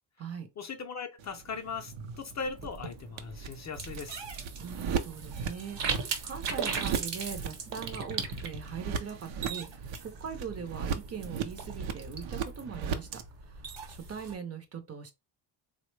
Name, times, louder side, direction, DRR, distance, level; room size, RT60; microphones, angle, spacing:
voice 1, 0.6-4.2, left 5 dB, 40° left, 0.4 m, -39 dB
sound 1, 1.2-13.2, right 6 dB, 85° right, 0.6 m, -38 dB
sound 2, 2.4-14.3, right 5 dB, 65° right, 0.9 m, -39 dB
voice 2, 4.6-13.1 13.4-15.1, right 7 dB, 35° right, 0.5 m, -41 dB
3.6 x 2.1 x 3.1 m
wide cardioid pair, 160°, 46 cm